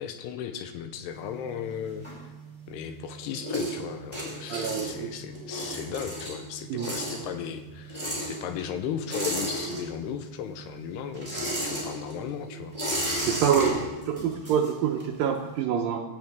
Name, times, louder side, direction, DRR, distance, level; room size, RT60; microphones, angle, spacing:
voice 1, 0.0-2.1 2.7-12.8, left 9 dB, 85° left, 9 dB, 2.7 m, -36 dB
sound 1, 1.1-2.7 3.0-10.3 10.5-15.2, right 1 dB, 5° left, 4.0 m, -33 dB
voice 2, 4.5-5.1 6.7-6.9 13.2-13.8 14.1-16.0, right 8 dB, 80° right, 2 dB, 2.1 m, -26 dB
17.0 x 9.7 x 3.6 m, 1.1 s
omnidirectional pair, 4.8 m